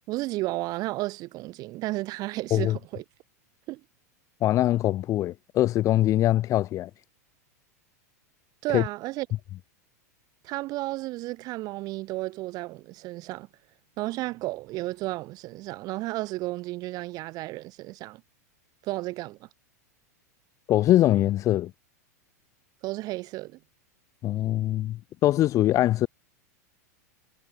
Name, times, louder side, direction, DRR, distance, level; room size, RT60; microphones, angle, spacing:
voice 1, 0.1-3.0 3.7-3.8 8.6-9.3 10.4-13.5 14.0-18.2 18.8-19.5 22.8-23.6, right 19 dB, 45° right, 6.1 m, -33 dB
voice 2, 4.4-6.9 8.7-8.8 20.7-21.7 24.2-26.1, left 14 dB, 35° left, 1.0 m, -23 dB
hypercardioid pair, 115°, 9 cm